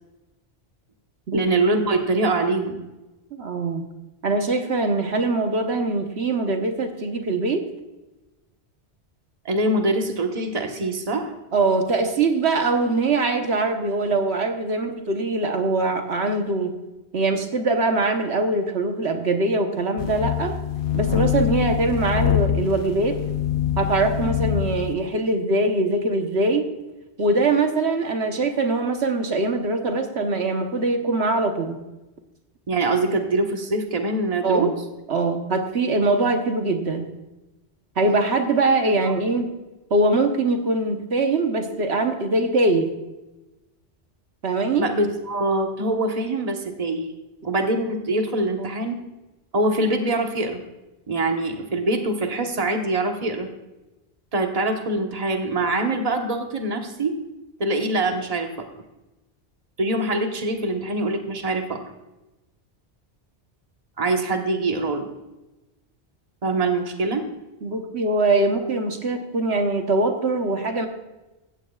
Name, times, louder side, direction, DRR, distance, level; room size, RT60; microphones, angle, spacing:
voice 1, 1.3-2.8 9.4-11.3 32.7-34.7 39.0-39.1 44.8-47.1 47.4-49.0 49.5-50.6 51.1-53.5 54.3-57.2 57.6-58.5 59.8-61.8 64.0-65.1 66.4-67.3, right 2 dB, 35° right, 3 dB, 1.3 m, -24 dB
voice 2, 3.3-3.8 4.2-7.6 11.5-16.7 17.1-20.6 20.9-23.2 23.8-26.6 27.2-31.8 34.4-34.7 35.1-37.1 38.0-39.5 39.9-42.9 44.4-44.9 48.6-48.7 67.6-70.9, right 2 dB, 80° right, 4 dB, 1.4 m, -22 dB
sound 1, 20.0-24.9, left 10 dB, 75° left, 0.9 m, -24 dB
16.0 x 14.5 x 2.4 m, 1.0 s
omnidirectional pair, 1.1 m